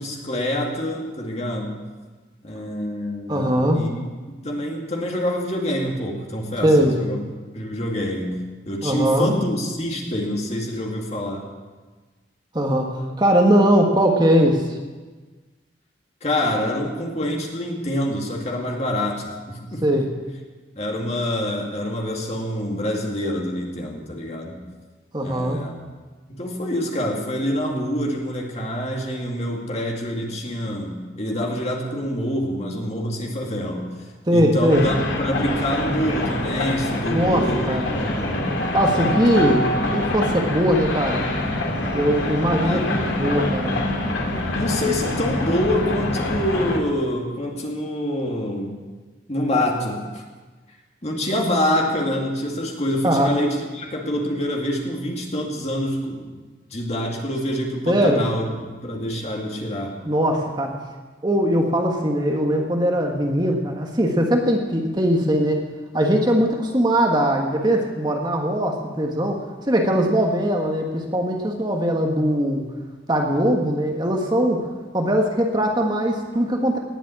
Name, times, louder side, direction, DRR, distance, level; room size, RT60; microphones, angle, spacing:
voice 1, 0.0-1.7 2.4-7.2 7.5-11.4 16.2-20.0 20.8-24.6 25.2-25.7 26.3-33.9 34.3-39.4 42.6-42.9 44.3-48.8 49.3-50.2 51.0-56.4 56.7-60.0, left 1 dB, 35° left, 0 dB, 2.3 m, -26 dB
voice 2, 3.3-3.8 6.6-7.0 8.8-9.3 12.5-14.8 19.8-20.1 25.1-25.6 34.3-34.9 37.1-37.9 38.7-41.2 41.9-43.7 53.0-53.3 57.9-58.2 60.0-60.8 61.2-65.6 65.9-72.6 73.1-74.7 74.9-76.8, equal, 25° right, 2 dB, 1.5 m, -20 dB
sound 1, 34.7-46.8, left 1 dB, 90° left, 2.4 m, -25 dB
18.5 x 7.5 x 8.4 m, 1.3 s
head